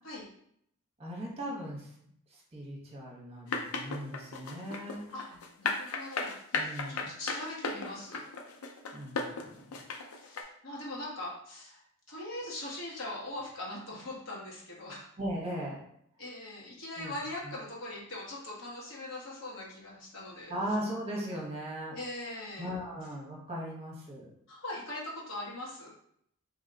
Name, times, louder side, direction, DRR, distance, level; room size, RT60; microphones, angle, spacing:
voice 1, 1.0-1.9 2.5-5.0 6.5-7.1 8.9-9.8 15.2-15.8 17.0-17.1 17.4-17.5 20.5-22.0 22.6-24.3, equal, 25° right, -2 dB, 1.0 m, -38 dB
sound 1, 3.5-10.4, left 4 dB, 75° left, 0.5 m, -35 dB
voice 2, 5.6-8.3 10.1-11.8 12.1-15.0 16.2-20.5 21.9-22.7 24.5-25.9, left 1 dB, 60° left, -4 dB, 1.3 m, -41 dB
3.0 x 2.9 x 3.9 m, 0.71 s
head